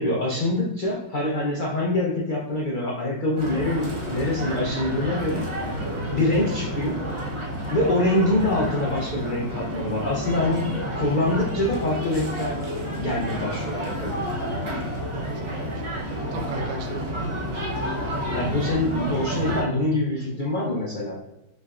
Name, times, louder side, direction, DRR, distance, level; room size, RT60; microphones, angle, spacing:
voice 1, 0.0-5.4 6.1-7.0 7.7-10.6 10.9-12.6 12.9-14.3 18.3-21.2, left 1 dB, 55° left, -4 dB, 0.5 m, -25 dB
sound 1, 3.4-19.6, equal, 45° right, 0.4 m, -30 dB
voice 2, 15.1-18.3, right 4 dB, 85° right, 4 dB, 1.4 m, -37 dB
5.7 x 3.2 x 2.5 m, 0.94 s
omnidirectional pair, 1.9 m